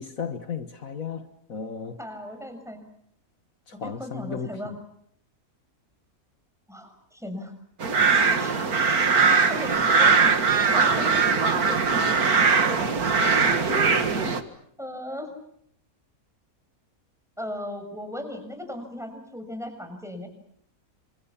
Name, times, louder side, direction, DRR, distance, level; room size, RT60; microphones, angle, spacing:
voice 1, 0.0-2.0 3.7-4.8, left 6 dB, 65° left, 1.9 m, -35 dB
voice 2, 2.0-2.8 3.7-4.7 6.7-7.5 8.4-8.6 9.5-10.4 10.6-12.8 13.5-14.3 14.8-15.3 17.4-20.3, left 1 dB, ahead, 6.4 m, -37 dB
sound 1, 7.8-14.4, right 5 dB, 90° right, 2.4 m, -21 dB
28.5 x 26.5 x 7.2 m
omnidirectional pair, 1.5 m